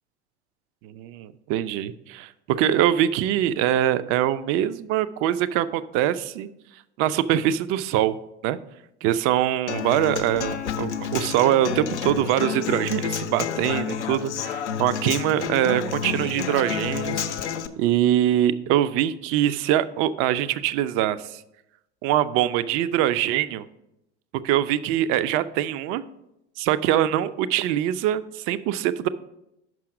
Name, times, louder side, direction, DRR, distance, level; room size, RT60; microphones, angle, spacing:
voice 1, 0.8-6.5 7.0-8.2 8.4-8.6 9.0-17.2 17.8-21.4 22.0-23.6 24.4-26.0 26.6-29.1, right 12 dB, 40° right, 14 dB, 0.4 m, -23 dB
Human voice / Acoustic guitar, 9.7-17.7, left 7 dB, 80° left, 0.6 m, -29 dB
6.1 x 5.6 x 4.8 m, 0.85 s
hypercardioid pair, 80°, 34 cm